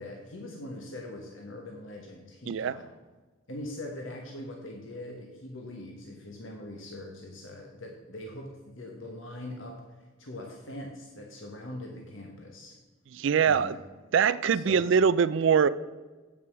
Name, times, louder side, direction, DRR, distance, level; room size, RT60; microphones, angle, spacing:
voice 1, 0.0-2.9 3.5-12.8 13.4-13.8 14.5-14.9, left 1 dB, 60° left, 1 dB, 1.3 m, -42 dB
voice 2, 13.1-13.7 14.1-15.7, right 6 dB, 60° right, 17 dB, 0.3 m, -23 dB
8.5 x 7.3 x 6.2 m, 1.3 s
head